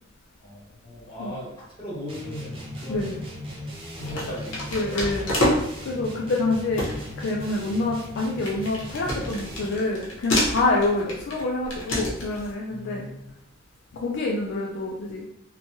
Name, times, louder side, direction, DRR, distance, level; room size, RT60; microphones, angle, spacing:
voice 1, 0.4-3.1 4.0-4.7 12.7-13.3, left 1 dB, 25° left, -9 dB, 1.4 m, -37 dB
sound 1, 2.1-9.8, left 1 dB, 25° right, 0.5 m, -38 dB
voice 2, 2.9-3.2 4.7-6.9 7.2-13.1 13.9-15.2, left 2 dB, 60° left, -1 dB, 0.3 m, -27 dB
sound 2, 3.0-3.3 4.0-5.9 6.4-6.5 6.8-12.5, left 1 dB, 75° left, 0.9 m, -29 dB
3.0 x 2.1 x 2.7 m, 0.78 s
head